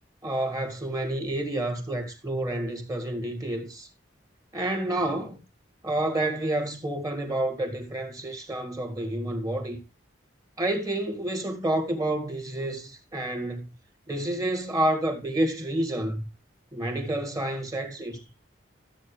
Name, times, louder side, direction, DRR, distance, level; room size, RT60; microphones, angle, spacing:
voice 1, 0.2-3.9 4.5-5.4 5.8-9.8 10.6-13.7 14.1-16.2 16.7-18.2, right 1 dB, 20° right, 1.9 m, -29 dB
15.0 x 7.6 x 3.3 m
head